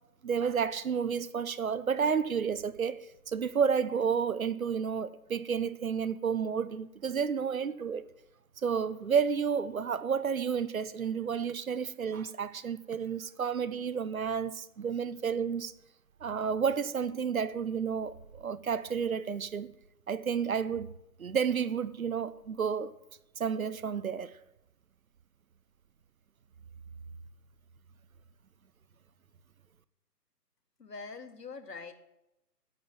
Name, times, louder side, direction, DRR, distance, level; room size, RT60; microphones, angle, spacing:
voice 1, 0.2-8.1 8.6-15.7 16.2-19.7 20.1-20.9 21.2-22.9 23.4-24.3, right 6 dB, 55° right, 0.9 m, -31 dB
voice 2, 30.8-31.9, left 4 dB, 75° left, 2.1 m, -43 dB
9.9 x 7.8 x 8.9 m
figure-of-eight pair, 150°, 49 cm